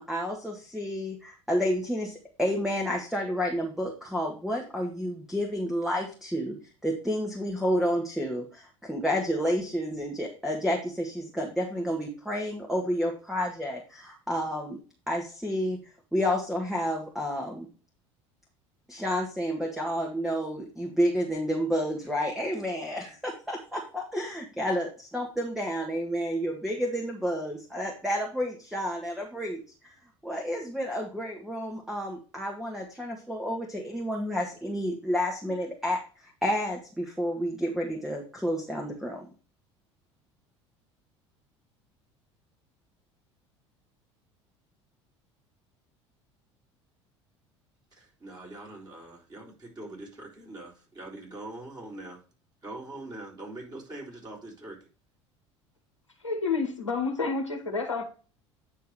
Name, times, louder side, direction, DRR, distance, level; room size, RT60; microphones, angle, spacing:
voice 1, 0.0-6.6 6.8-14.8 15.1-15.8 16.1-17.7 18.9-29.6 30.2-39.3, equal, ahead, 1.8 m, -30 dB
voice 2, 47.9-52.2 52.6-54.8, right 2 dB, 25° right, 4.0 m, -43 dB
voice 3, 56.2-58.0, left 4 dB, 90° left, 1.3 m, -29 dB
9.5 x 3.6 x 4.7 m
figure-of-eight pair, 65°, 15 cm